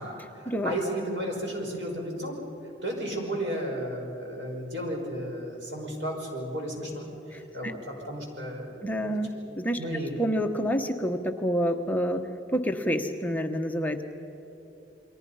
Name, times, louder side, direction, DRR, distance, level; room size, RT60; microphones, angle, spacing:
voice 1, 0.0-2.4 2.8-7.1 7.5-8.9 9.3-9.4 9.8-10.1, right 1 dB, 90° right, 0 dB, 5.8 m, -33 dB
voice 2, 7.3-7.7 8.8-9.8 10.2-14.0, equal, 10° left, 4 dB, 0.9 m, -28 dB
29.5 x 23.5 x 5.6 m, 2.9 s
head